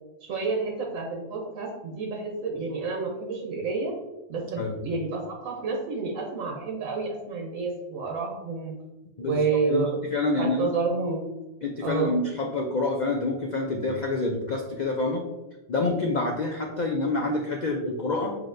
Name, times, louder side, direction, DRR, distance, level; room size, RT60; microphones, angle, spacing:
voice 1, 0.2-3.9 4.3-8.7 9.2-11.3 11.8-12.1, right 4 dB, 80° right, -1 dB, 1.1 m, -29 dB
voice 2, 9.2-10.7 11.6-15.2 15.7-18.4, left 2 dB, 65° left, 0 dB, 0.4 m, -27 dB
7.4 x 2.7 x 2.5 m, 1.1 s
omnidirectional pair, 1.4 m